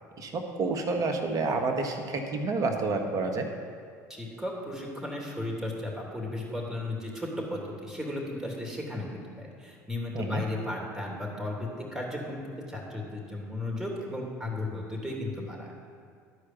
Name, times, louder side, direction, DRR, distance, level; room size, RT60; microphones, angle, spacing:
voice 1, 0.2-3.5 10.1-10.4, right 3 dB, 40° right, 4 dB, 1.4 m, -29 dB
voice 2, 4.1-9.1 9.4-15.7, left 1 dB, 5° right, -1 dB, 2.8 m, -35 dB
12.0 x 4.9 x 7.3 m, 2.2 s
hypercardioid pair, 70°, 9 cm